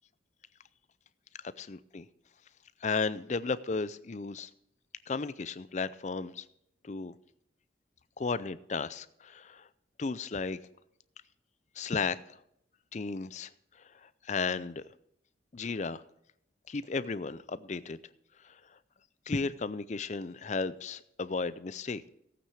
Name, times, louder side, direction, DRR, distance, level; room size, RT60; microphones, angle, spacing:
voice 1, 1.6-2.1 2.8-4.5 5.1-6.5 6.8-7.1 8.2-9.7 10.0-10.6 11.8-12.4 12.9-13.5 14.0-14.8 15.5-16.0 16.7-18.0 18.4-18.6 19.3-22.1, left 4 dB, 40° left, 16 dB, 0.5 m, -34 dB
16.0 x 8.9 x 4.8 m, 0.73 s
head